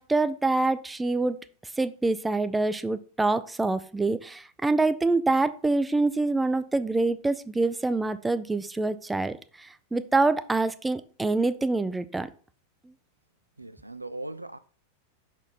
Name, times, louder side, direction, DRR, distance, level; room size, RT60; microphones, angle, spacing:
voice 1, 0.0-1.4 1.8-12.3, right 3 dB, 10° right, 0.4 m, -26 dB
voice 2, 13.6-14.6, right 2 dB, 85° right, 0.3 m, -38 dB
5.7 x 4.4 x 4.2 m
figure-of-eight pair, 90°, 0 cm